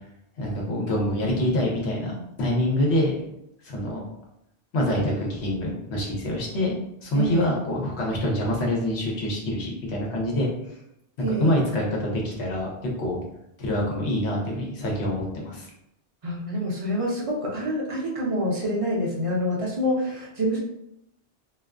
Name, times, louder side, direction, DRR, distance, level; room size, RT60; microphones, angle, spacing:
voice 1, 0.4-3.2 3.6-4.0 4.7-6.7 7.0-10.5 11.4-12.7 13.0-13.2 13.6-15.7, left 1 dB, 75° left, -2 dB, 1.0 m, -26 dB
voice 2, 7.1-7.5 11.2-11.6 16.2-20.6, equal, 50° right, -3 dB, 0.4 m, -26 dB
2.4 x 2.3 x 2.3 m, 0.80 s
omnidirectional pair, 1.2 m